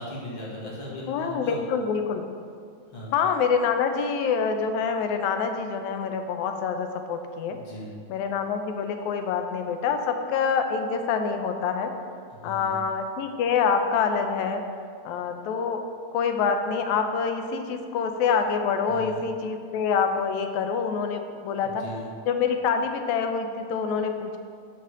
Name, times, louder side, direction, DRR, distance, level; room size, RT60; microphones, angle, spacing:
voice 1, 0.0-1.6 2.9-3.1 7.5-7.9 12.3-12.8 18.9-19.2 21.4-22.0, equal, 25° left, -6 dB, 1.0 m, -38 dB
voice 2, 1.1-2.2 3.1-7.6 8.1-11.9 12.4-14.6 15.1-15.8 16.1-21.8 22.3-24.4, left 6 dB, 85° left, 6 dB, 2.0 m, -26 dB
9.0 x 3.4 x 6.6 m, 2.2 s
omnidirectional pair, 3.3 m